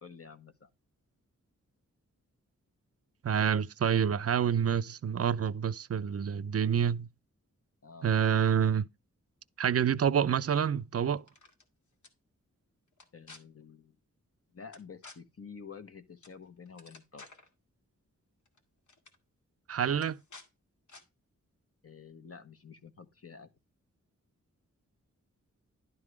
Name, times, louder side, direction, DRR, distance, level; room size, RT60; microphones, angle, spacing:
voice 1, 0.0-0.7 7.8-8.1 13.1-13.9 14.5-17.2 21.8-23.5, left 5 dB, 50° left, 1.2 m, -49 dB
voice 2, 3.2-7.1 8.0-8.9 9.6-11.2 19.7-20.2, right 8 dB, 50° right, 0.5 m, -27 dB
sound 1, 11.2-11.6 12.0-12.1 12.9-13.4 14.7-15.2 16.2-16.4 16.7-17.5 18.5-18.6 18.9-19.2 20.0-20.5 20.9-21.0, left 3 dB, 70° left, 1.8 m, -52 dB
11.0 x 3.7 x 4.7 m
wide cardioid pair, 90°, 31 cm